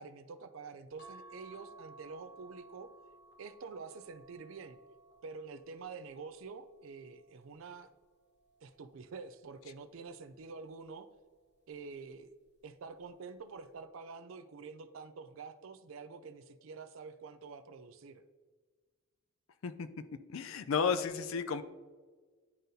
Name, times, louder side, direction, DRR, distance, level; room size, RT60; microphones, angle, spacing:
voice 1, 0.0-2.9 3.4-4.8 5.2-7.9 8.6-11.1 11.7-12.3 12.6-18.2, right 4 dB, 65° right, 10 dB, 0.4 m, -47 dB
sound 1, 1.0-7.6 8.2-9.6 10.9-11.3 11.6-11.7, right 3 dB, 50° left, 0.9 m, -58 dB
voice 2, 20.3-21.6, left 6 dB, 70° left, 11 dB, 0.4 m, -32 dB
11.0 x 3.9 x 2.7 m, 1.4 s
head